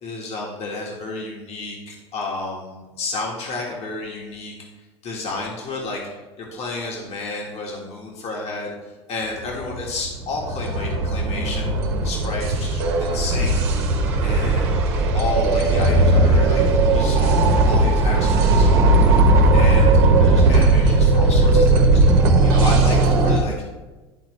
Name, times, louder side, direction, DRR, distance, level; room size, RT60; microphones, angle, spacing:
voice 1, 0.0-4.5 5.0-6.0 6.4-11.7 12.0-13.7 14.2-14.8 15.1-16.6 16.9-19.2 19.5-22.0 22.4-23.5, left 3 dB, 50° left, -1 dB, 1.7 m, -31 dB
sound 1, 9.5-23.4, right 2 dB, 75° right, 1.0 m, -17 dB
11.5 x 4.0 x 3.2 m, 1.2 s
hypercardioid pair, 75°, 14 cm